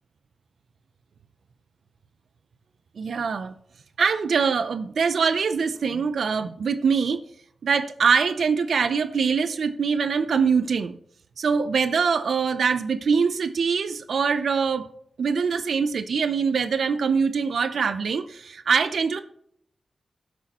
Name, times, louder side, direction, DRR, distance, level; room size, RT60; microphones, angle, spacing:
voice 1, 3.0-3.5 4.0-7.2 7.6-11.0 11.4-14.9 15.2-19.2, right 5 dB, 80° right, 0.6 m, -23 dB
16.5 x 6.2 x 3.0 m
wide cardioid pair, 155°, 0 cm